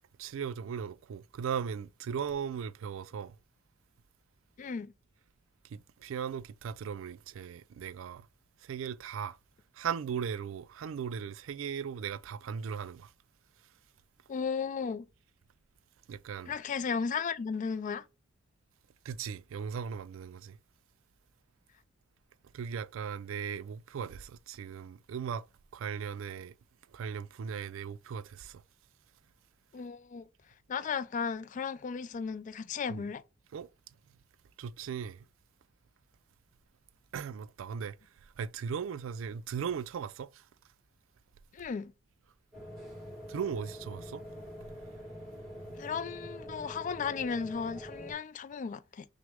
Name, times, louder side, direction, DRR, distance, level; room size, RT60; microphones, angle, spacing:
voice 1, 0.2-3.4 5.6-8.3 8.6-9.4 9.7-13.1 16.1-16.5 19.0-20.6 22.5-25.5 25.7-26.5 26.9-28.6 32.9-33.1 33.5-33.7 34.6-35.2 37.1-38.0 38.4-40.4 43.3-44.2, right 7 dB, 75° right, 0.3 m, -38 dB
voice 2, 4.6-4.9 14.3-15.1 16.5-18.0 29.7-30.3 30.7-33.2 41.5-41.9 45.8-49.1, left 6 dB, 40° left, 0.3 m, -35 dB
sound 1, 42.5-48.1, equal, ahead, 2.1 m, -45 dB
6.0 x 2.1 x 3.5 m
head